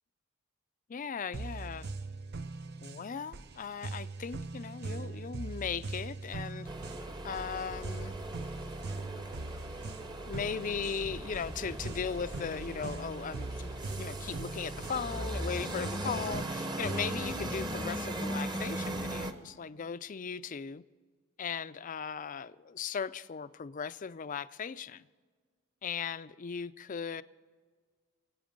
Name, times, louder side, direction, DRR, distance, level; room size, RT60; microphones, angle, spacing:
voice 1, 0.9-1.9 2.8-6.7 7.2-8.2 10.2-20.8 21.4-25.1 25.8-27.2, left 6 dB, 40° left, 0.4 m, -38 dB
sound 1, 1.3-17.4, right 3 dB, 50° right, 0.6 m, -42 dB
sound 2, 6.6-19.3, right 1 dB, 20° right, 0.9 m, -38 dB
24.5 x 8.7 x 5.2 m
head